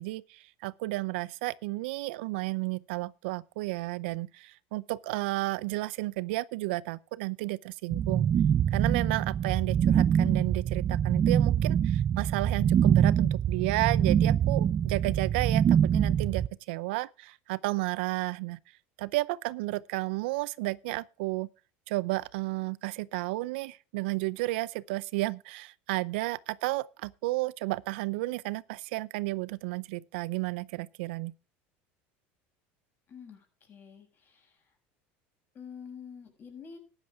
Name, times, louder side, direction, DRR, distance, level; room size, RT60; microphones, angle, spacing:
voice 1, 0.0-8.3 8.7-18.6 19.0-21.5 21.9-31.3, right 21 dB, 85° right, 0.6 m, -32 dB
sound 1, 7.9-16.5, right 9 dB, 35° right, 0.5 m, -25 dB
voice 2, 33.1-34.7 35.5-36.8, left 6 dB, 35° left, 6.1 m, -47 dB
13.5 x 10.5 x 3.6 m
supercardioid pair, 120°, 6 cm